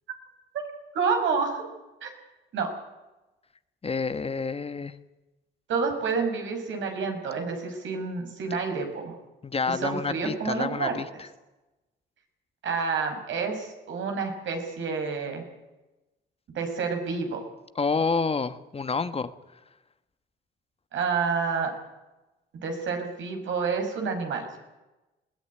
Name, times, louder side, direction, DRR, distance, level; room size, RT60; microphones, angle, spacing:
voice 1, 0.9-1.6 2.0-2.1 2.5-2.7 5.7-9.2 9.7-11.0 12.6-15.4 16.5-17.4 20.9-21.7 22.6-24.5, right 5 dB, 75° right, 4 dB, 5.8 m, -29 dB
voice 2, 3.8-4.9 9.4-11.3 17.8-19.3, left 4 dB, 30° left, 12 dB, 1.2 m, -28 dB
21.0 x 17.0 x 9.8 m, 1.0 s
cardioid pair, 90°, 20 cm